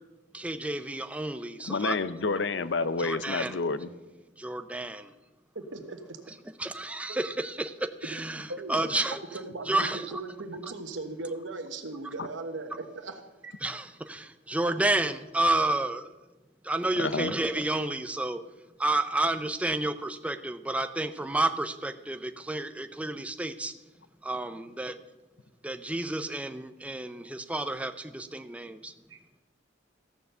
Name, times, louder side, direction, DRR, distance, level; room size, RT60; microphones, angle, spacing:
voice 1, 0.3-2.0 3.0-3.6 4.4-5.1 6.6-8.4 8.7-9.2 9.7-10.0 13.6-16.1 16.6-18.4 18.8-23.7 24.2-24.9 25.6-28.9, right 2 dB, 5° right, 9 dB, 0.5 m, -30 dB
voice 2, 1.7-3.9 12.2-12.3 17.0-17.3, left 4 dB, 70° left, 14 dB, 0.6 m, -29 dB
voice 3, 5.5-6.2 7.1-7.2 8.3-8.7 9.3-13.6 29.1-29.2, right 3 dB, 85° right, 7 dB, 1.2 m, -38 dB
14.5 x 6.8 x 6.7 m, 1.1 s
head